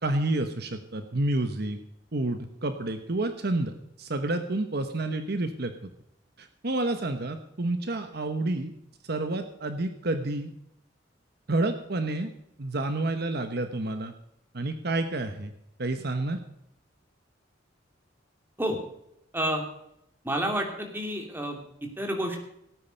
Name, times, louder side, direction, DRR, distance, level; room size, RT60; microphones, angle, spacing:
voice 1, 0.0-1.8 2.1-5.7 6.4-8.7 9.0-10.5 11.5-12.3 12.6-14.1 14.5-15.5 15.8-16.4, right 2 dB, 55° right, 8 dB, 1.1 m, -29 dB
voice 2, 20.2-22.5, right 1 dB, 10° right, 2 dB, 2.7 m, -30 dB
17.5 x 9.0 x 5.3 m, 0.77 s
head